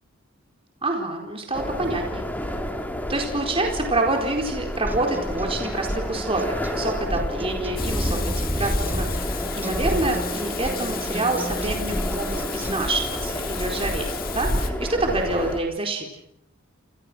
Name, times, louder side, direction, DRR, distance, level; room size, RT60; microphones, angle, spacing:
voice 1, 0.8-2.3 3.1-16.1, right 2 dB, 25° right, 1 dB, 4.5 m, -27 dB
sound 1, 1.5-15.6, equal, 10° left, 3.4 m, -29 dB
sound 2, 4.9-12.9, equal, 10° right, 1.0 m, -37 dB
Water tap faucet / Sink (filling or washing), 7.8-14.7, left 10 dB, 45° left, 2.4 m, -36 dB
29.5 x 26.5 x 6.3 m, 0.77 s
head